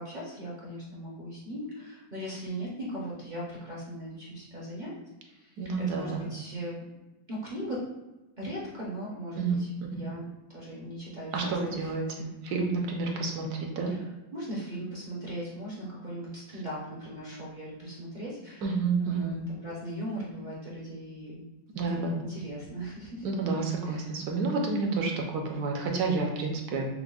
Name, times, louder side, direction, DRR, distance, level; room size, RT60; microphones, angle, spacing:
voice 1, 0.0-5.6 5.9-6.8 7.3-7.8 8.4-11.9 13.9-14.0 14.3-18.7 19.0-21.4 21.7-23.3 23.8-24.1, equal, 50° right, -6 dB, 0.6 m, -39 dB
voice 2, 5.6-6.3 9.4-9.6 9.9-10.0 11.3-13.9 18.6-19.4 21.7-22.1 23.2-26.9, right 4 dB, 70° right, 1 dB, 1.1 m, -30 dB
5.9 x 2.0 x 2.3 m, 1.1 s
omnidirectional pair, 1.8 m